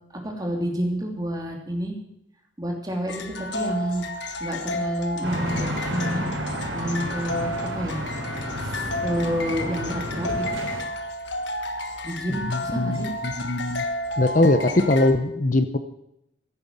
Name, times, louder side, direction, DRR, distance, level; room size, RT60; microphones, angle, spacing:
voice 1, 0.2-1.9 2.6-4.0 4.4-6.3 6.7-7.5 7.7-8.0 8.6-10.6 12.0-13.1, equal, 20° right, 1 dB, 3.1 m, -29 dB
sound 1, 3.1-15.1, left 1 dB, 60° left, 1.5 m, -32 dB
sound 2, 5.2-10.8, equal, 70° right, 4.4 m, -31 dB
voice 2, 12.5-13.8 14.2-15.8, left 2 dB, 40° left, 9 dB, 0.8 m, -21 dB
16.0 x 9.5 x 7.5 m, 0.81 s
head